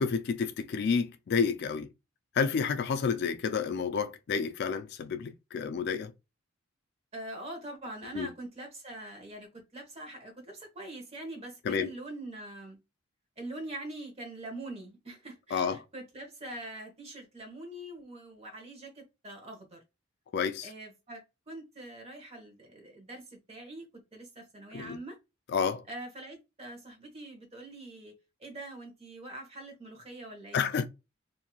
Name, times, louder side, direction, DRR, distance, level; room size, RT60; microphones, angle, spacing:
voice 1, 0.0-1.9 2.3-6.1 8.1-8.3 11.6-11.9 15.5-15.8 20.3-20.7 24.7-25.0 25.5-25.8 30.5-30.9, left 6 dB, 55° left, 0.3 m, -30 dB
voice 2, 7.1-12.8 13.4-19.8 20.6-25.2 25.9-30.7, right 1 dB, 30° right, 1.0 m, -44 dB
3.0 x 2.6 x 2.3 m
head